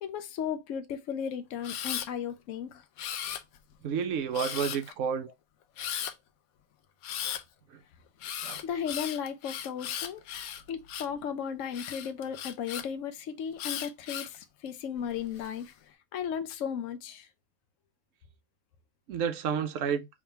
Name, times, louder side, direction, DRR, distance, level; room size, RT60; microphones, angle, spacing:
voice 1, 0.0-2.8 8.6-10.2 10.7-15.7 16.1-17.3, left 8 dB, 70° left, 1.0 m, -35 dB
Camera, 1.6-2.1 3.0-3.7 4.3-4.9 5.8-6.1 7.0-7.4 8.2-11.2 11.7-12.8 13.6-14.4 15.0-15.5, left 9 dB, 90° left, 1.1 m, -37 dB
voice 2, 3.8-5.3 7.7-7.8 8.4-8.6 19.1-20.1, right 7 dB, 70° right, 1.0 m, -30 dB
3.7 x 3.1 x 4.4 m
omnidirectional pair, 1.5 m